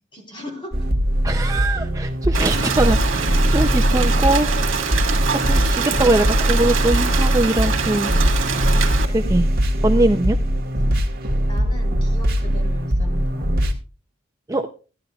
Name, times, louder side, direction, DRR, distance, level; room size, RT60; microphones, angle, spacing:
voice 1, 0.1-0.9 1.1-1.3 4.9-5.2 11.5-13.7, equal, 25° left, 1 dB, 3.2 m, -39 dB
sound 1, 0.7-13.7, equal, 50° right, 1.5 m, -21 dB
voice 2, 1.2-4.8 5.4-8.1 9.1-9.5 9.8-10.4 14.5-14.7, right 2 dB, 15° right, 4 dB, 0.4 m, -22 dB
Rain, 2.3-9.1, right 5 dB, 90° right, 1.7 m, -24 dB
14.5 x 11.0 x 2.3 m, 0.35 s
head